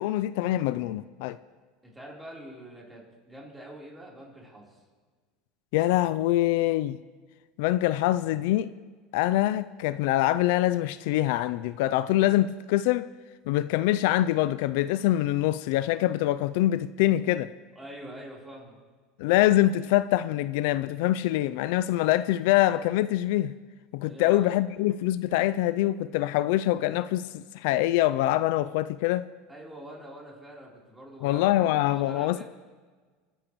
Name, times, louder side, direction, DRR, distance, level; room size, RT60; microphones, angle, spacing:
voice 1, 0.0-1.4 5.7-7.0 7.6-8.7 9.1-13.1 13.5-17.5 19.2-23.5 23.9-29.3 31.2-32.4, left 15 dB, 70° left, 0.4 m, -24 dB
voice 2, 1.8-4.8 17.7-18.8 24.0-24.5 29.5-32.4, right 1 dB, 10° right, 3.7 m, -45 dB
29.0 x 10.0 x 3.1 m
supercardioid pair, 135°, 0 cm